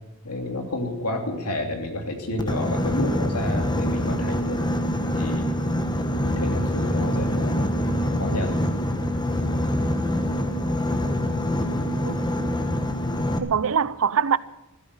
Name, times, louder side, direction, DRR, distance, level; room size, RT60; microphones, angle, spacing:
voice 1, 0.2-4.6 5.1-5.5 6.1-7.7 8.2-8.6, left 1 dB, 90° left, 2.9 m, -30 dB
Boat Water vehicle, 2.4-13.4, left 1 dB, 20° left, 1.3 m, -25 dB
voice 2, 12.0-12.6 13.4-14.4, right 7 dB, 65° right, 0.6 m, -24 dB
15.5 x 12.5 x 6.3 m
head